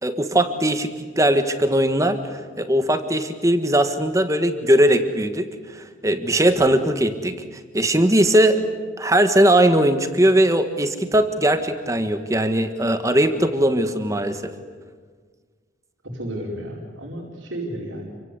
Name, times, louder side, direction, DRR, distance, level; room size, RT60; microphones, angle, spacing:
voice 1, 0.0-0.9 1.2-5.5 5.7-7.4 7.7-8.6 9.0-14.5, right 1 dB, 15° right, 8 dB, 1.6 m, -19 dB
voice 2, 16.0-18.1, right 1 dB, 85° right, -2 dB, 4.8 m, -32 dB
29.5 x 24.0 x 8.4 m, 1.5 s
head